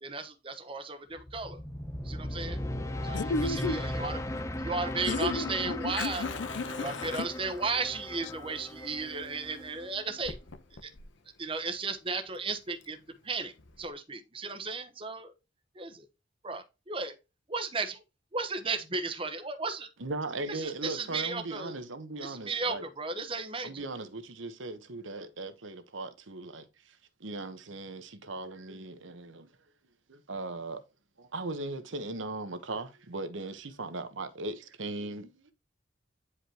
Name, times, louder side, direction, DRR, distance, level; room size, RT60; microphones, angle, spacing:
voice 1, 0.0-1.6 2.0-2.6 3.0-4.2 4.6-6.2 6.8-10.3 11.4-13.0 13.2-15.3 15.8-16.1 16.4-17.1 17.5-18.0 18.3-19.9 20.5-21.7 22.2-23.8, right 4 dB, 30° right, 1.0 m, -35 dB
sound 1, 1.2-10.3, left 1 dB, 15° left, 0.8 m, -37 dB
Fire, 2.8-13.9, left 5 dB, 80° left, 0.9 m, -45 dB
voice 2, 3.1-3.8 5.1-6.9 7.2-7.3, left 3 dB, 65° left, 0.5 m, -33 dB
voice 3, 20.0-22.9 23.6-29.5 30.1-30.8 31.2-35.5, right 2 dB, 80° right, 1.1 m, -38 dB
9.7 x 5.0 x 2.9 m
head